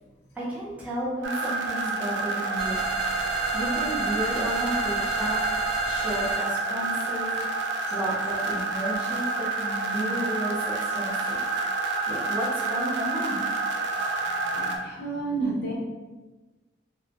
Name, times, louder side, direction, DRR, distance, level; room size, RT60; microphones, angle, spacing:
voice 1, 0.3-2.8 3.5-5.4 5.8-11.4 12.1-13.5, equal, 5° right, -9 dB, 0.7 m, -32 dB
sound 1, 1.2-14.8, right 3 dB, 70° right, 0.3 m, -28 dB
sound 2, 2.6-6.4, right 3 dB, 55° right, 1.0 m, -33 dB
voice 2, 14.4-15.8, right 3 dB, 65° left, -2 dB, 0.6 m, -30 dB
2.5 x 2.0 x 2.9 m, 1.2 s
head